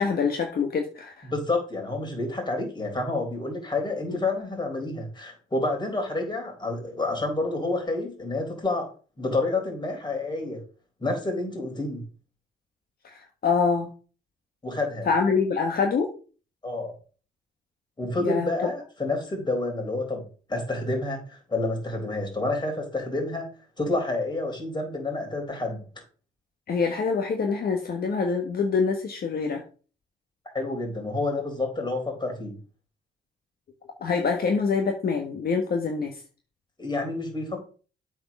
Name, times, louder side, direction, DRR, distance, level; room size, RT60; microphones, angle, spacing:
voice 1, 0.0-1.3 4.1-4.2 13.0-13.9 15.0-16.1 18.2-18.5 26.7-29.6 34.0-36.2, left 5 dB, 50° left, 3 dB, 1.4 m, -25 dB
voice 2, 1.2-8.9 9.2-10.6 11.0-12.0 14.6-15.1 16.6-17.0 18.0-20.2 20.5-25.8 30.5-32.6 36.8-37.7, left 2 dB, 20° left, 2 dB, 4.1 m, -29 dB
8.0 x 4.7 x 6.0 m, 0.38 s
cardioid pair, 90°, 20 cm